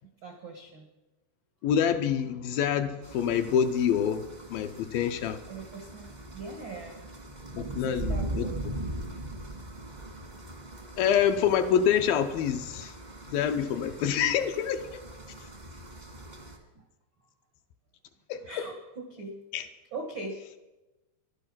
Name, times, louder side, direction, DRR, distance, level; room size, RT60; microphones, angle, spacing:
voice 1, 0.2-0.9 5.5-7.1 7.7-9.2 13.8-14.0 15.3-15.4 16.7-16.8 18.4-19.4 19.9-20.4, right 3 dB, 80° right, 2 dB, 1.0 m, -42 dB
voice 2, 1.6-4.2 4.5-5.4 7.6-8.5 11.0-12.9 13.3-15.0 18.3-18.6 19.5-19.7, left 8 dB, 80° left, 7 dB, 2.3 m, -26 dB
sound 1, 3.0-16.6, right 1 dB, 45° right, 0.5 m, -40 dB
13.0 x 11.5 x 6.1 m, 1.1 s
omnidirectional pair, 4.6 m